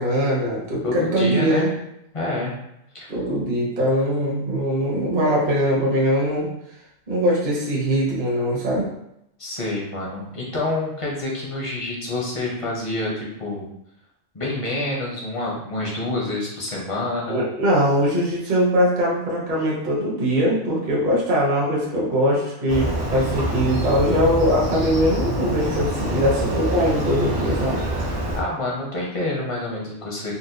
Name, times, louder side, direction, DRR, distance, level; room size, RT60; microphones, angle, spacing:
voice 1, 0.0-1.7 3.1-6.5 7.1-8.9 17.3-27.8, equal, 40° right, -4 dB, 0.8 m, -21 dB
voice 2, 0.8-1.6 2.1-2.5 2.9-3.1 9.4-13.7 14.3-17.4 28.3-30.3, left 2 dB, 35° left, -4 dB, 0.6 m, -27 dB
Motorcycle, 22.7-28.4, equal, 65° right, 1.1 m, -26 dB
4.0 x 2.2 x 2.6 m, 0.80 s
omnidirectional pair, 1.4 m